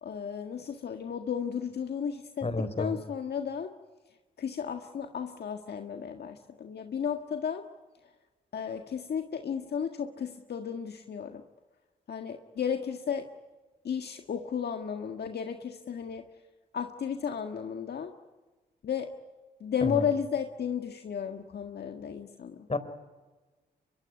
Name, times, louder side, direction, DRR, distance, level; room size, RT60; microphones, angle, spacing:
voice 1, 0.0-3.7 4.4-7.6 8.0-8.1 8.5-11.4 12.1-13.3 13.8-16.2 16.7-18.1 18.8-19.1 19.6-22.7, left 7 dB, 65° left, 5 dB, 1.7 m, -34 dB
voice 2, 2.4-3.0 19.8-20.0 22.7-22.8, left 3 dB, 35° left, 12 dB, 3.9 m, -30 dB
24.0 x 23.5 x 9.3 m, 1.2 s
supercardioid pair, 50°, 18 cm